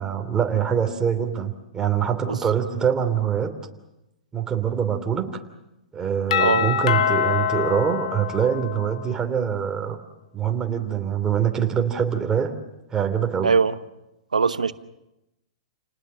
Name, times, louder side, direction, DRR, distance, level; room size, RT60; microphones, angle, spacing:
voice 1, 0.0-3.6 4.3-5.4 5.9-10.0 10.3-12.5 12.9-13.5, right 8 dB, 15° right, 4 dB, 3.0 m, -24 dB
Doorbell, 6.3-9.1, left 9 dB, 65° left, 1.3 m, -24 dB
voice 2, 6.4-6.7 13.4-13.7 14.3-14.7, right 5 dB, 90° right, 13 dB, 1.1 m, -20 dB
29.5 x 19.5 x 7.6 m, 0.91 s
hypercardioid pair, 115°, 4 cm